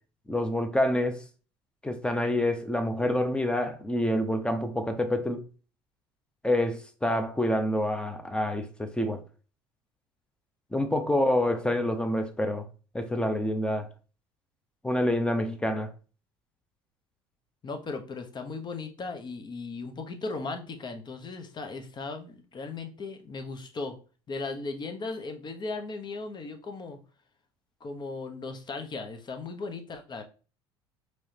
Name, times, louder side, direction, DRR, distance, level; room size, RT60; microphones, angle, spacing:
voice 1, 0.3-1.2 1.8-5.4 6.4-9.2 10.7-12.6 12.9-13.9 14.8-15.9, left 1 dB, 5° left, 0.8 m, -27 dB
voice 2, 17.6-24.0 24.3-27.0 27.8-30.2, left 3 dB, 35° left, 1.0 m, -37 dB
4.7 x 3.2 x 2.8 m
hypercardioid pair, 70°, 13 cm